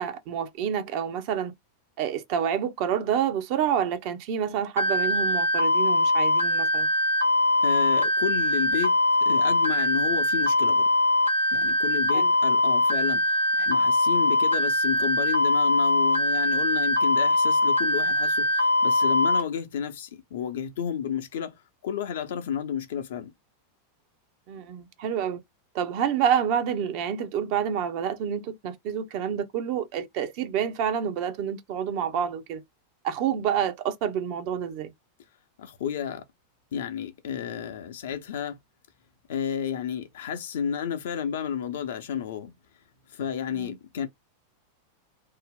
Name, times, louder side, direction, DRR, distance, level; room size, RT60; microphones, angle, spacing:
voice 1, 0.0-1.5 2.0-6.9 12.1-12.3 24.5-25.4 25.7-32.6 33.0-34.9 43.5-43.8, right 8 dB, 45° right, 0.6 m, -28 dB
sound 1, 4.8-19.4, left 1 dB, 85° right, 0.7 m, -22 dB
voice 2, 7.6-10.9 11.5-21.6 21.8-23.3 35.6-36.2 36.7-38.6 39.3-42.5 43.1-44.1, left 8 dB, 60° left, 0.5 m, -31 dB
2.6 x 2.0 x 3.7 m
figure-of-eight pair, 90°, 0 cm